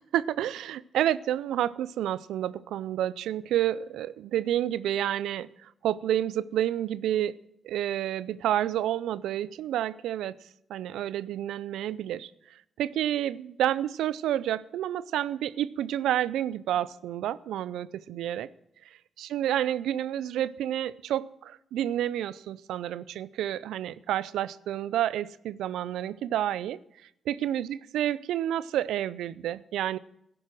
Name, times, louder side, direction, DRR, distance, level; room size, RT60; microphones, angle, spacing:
voice 1, 0.0-7.4 7.6-10.4 10.7-18.5 18.8-18.9 19.2-26.8 27.3-30.0, right 11 dB, 85° right, 19 dB, 0.5 m, -29 dB
12.5 x 10.5 x 7.5 m, 0.78 s
supercardioid pair, 60°, 0 cm